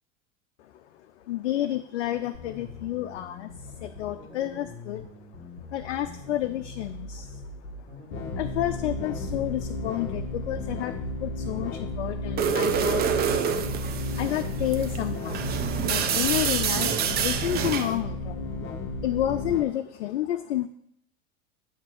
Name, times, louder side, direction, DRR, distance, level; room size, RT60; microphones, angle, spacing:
voice 1, 0.6-5.0 5.5-13.3 13.6-20.7, left 13 dB, 65° left, 8 dB, 0.5 m, -31 dB
sound 1, 2.3-9.7, left 2 dB, 70° right, 1.6 m, -43 dB
sound 2, 8.1-19.7, left 2 dB, 30° left, 0.8 m, -33 dB
sound 3, 12.4-18.0, right 8 dB, 25° right, 0.5 m, -27 dB
7.3 x 2.9 x 6.0 m, 0.73 s
figure-of-eight pair, 75°, 37 cm